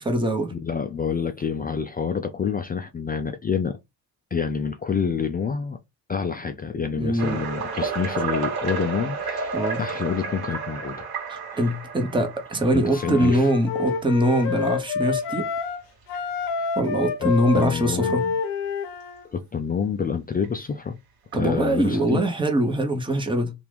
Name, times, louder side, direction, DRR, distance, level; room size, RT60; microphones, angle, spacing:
voice 1, 0.0-0.5 7.0-7.4 9.5-9.8 11.3-15.5 16.7-18.2 21.3-23.5, right 1 dB, 10° right, 1.1 m, -23 dB
voice 2, 0.5-3.8 4.3-5.8 6.1-11.1 11.5-11.7 12.7-13.5 16.6-16.7 17.2-18.3 19.3-21.0 21.3-22.2, left 6 dB, 20° left, 0.4 m, -28 dB
sound 1, 7.2-14.0 14.7-14.9 15.4-15.5 16.1-16.2 17.5-17.6 20.4-20.5 21.3-22.0, right 4 dB, 50° right, 1.4 m, -32 dB
Wind instrument woodwind instrument, 12.9-15.8 16.1-19.2, left 6 dB, 85° left, 0.8 m, -28 dB
2.9 x 2.5 x 3.4 m
hypercardioid pair, 65°, 46 cm